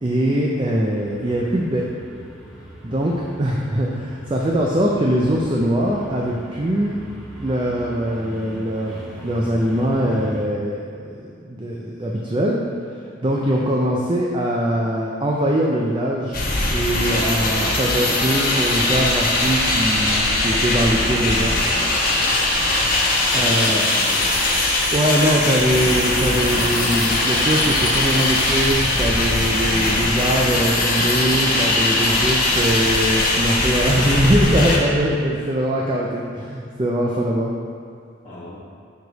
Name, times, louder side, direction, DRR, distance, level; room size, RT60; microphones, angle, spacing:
voice 1, 0.0-1.8 2.8-7.0 7.4-11.1 11.4-12.6 13.2-16.5 16.7-21.5 23.3-23.9 24.9-37.5, equal, 25° right, -2 dB, 0.4 m, -22 dB
sound 1, 0.9-10.5, equal, 5° right, 0.8 m, -39 dB
sound 2, 16.3-34.8, left 2 dB, 45° left, 1.0 m, -20 dB
voice 2, 23.3-24.6 38.2-38.6, left 1 dB, 20° left, -14 dB, 1.3 m, -38 dB
6.4 x 4.8 x 4.0 m, 2.3 s
head